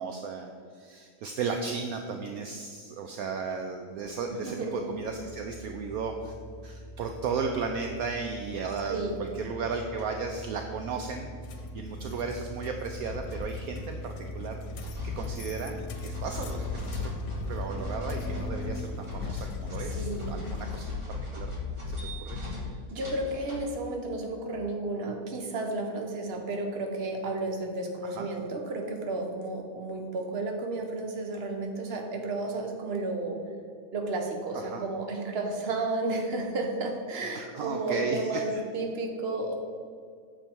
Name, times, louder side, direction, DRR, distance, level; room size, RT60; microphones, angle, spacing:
voice 1, 0.0-6.3 6.6-14.5 15.0-17.1 17.5-21.5 21.9-22.4 28.0-28.3 34.5-34.8 37.3-38.4, right 5 dB, 70° right, 4 dB, 1.0 m, -35 dB
voice 2, 4.3-4.8 8.9-9.2 19.8-20.3 22.9-33.4 33.9-39.5, right 2 dB, 40° right, 3 dB, 1.2 m, -32 dB
sound 1, 4.9-18.8, right 1 dB, 60° left, 1.5 m, -41 dB
sound 2, 9.9-10.1 10.3-10.4 10.6-10.7 10.9-11.0 11.2-11.3 11.7-11.8 12.4-12.5 13.0-13.8 14.8-23.6, left 3 dB, 20° right, 1.8 m, -37 dB
sound 3, 11.4-20.8, left 6 dB, 90° left, 1.4 m, -43 dB
8.9 x 6.7 x 4.5 m, 2.2 s
omnidirectional pair, 1.8 m